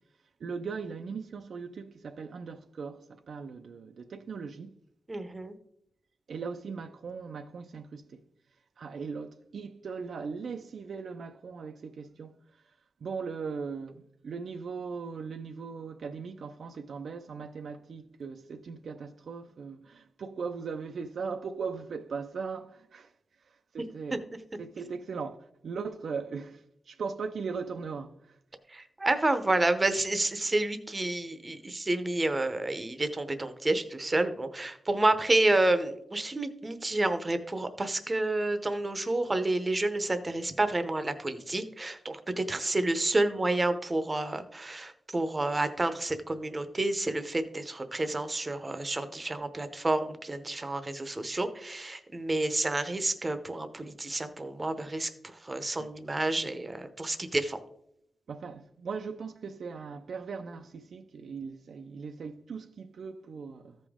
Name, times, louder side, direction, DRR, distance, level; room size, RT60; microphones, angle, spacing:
voice 1, 0.4-4.7 6.3-8.2 8.8-12.7 13.0-23.1 23.4-24.3 24.6-28.4 55.8-55.9 58.3-63.8, right 5 dB, 65° right, 0.5 m, -39 dB
voice 2, 5.1-5.5 28.7-55.1 55.4-57.6, right 2 dB, 20° right, 0.7 m, -29 dB
14.5 x 5.1 x 3.6 m
wide cardioid pair, 135°, 0 cm